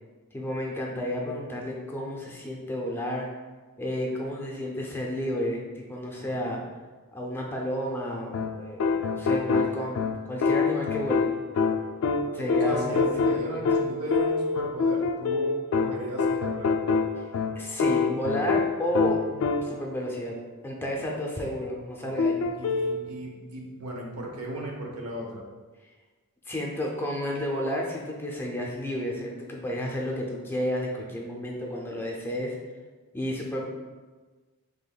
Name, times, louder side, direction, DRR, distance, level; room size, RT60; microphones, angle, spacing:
voice 1, 0.3-3.3 3.8-6.6 7.1-10.0 10.3-11.3 12.3-13.8 17.6-20.4 20.6-22.4 26.5-32.6 33.1-33.6, equal, 10° left, -1 dB, 0.5 m, -31 dB
voice 2, 6.2-6.6 12.2-16.8 20.9-21.0 22.0-25.4, right 1 dB, 85° right, 0 dB, 0.8 m, -37 dB
sound 1, 8.3-20.0 22.2-23.0, left 4 dB, 70° left, 0.3 m, -26 dB
5.3 x 3.4 x 2.2 m, 1.3 s
head